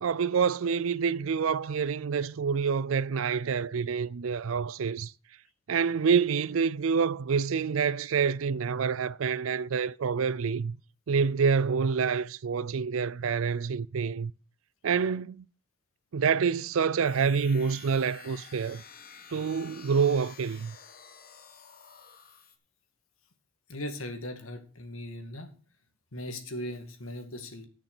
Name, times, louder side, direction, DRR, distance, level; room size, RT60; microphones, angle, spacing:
voice 1, 0.0-5.1 5.7-10.8 11.1-14.3 14.8-15.4 16.1-18.8 19.3-20.7, right 6 dB, 75° right, 0.5 m, -27 dB
sound 1, 17.0-22.6, left 7 dB, 45° left, 1.2 m, -50 dB
voice 2, 23.7-25.5 26.1-27.7, left 1 dB, 85° left, 2.1 m, -38 dB
10.0 x 6.3 x 6.0 m
head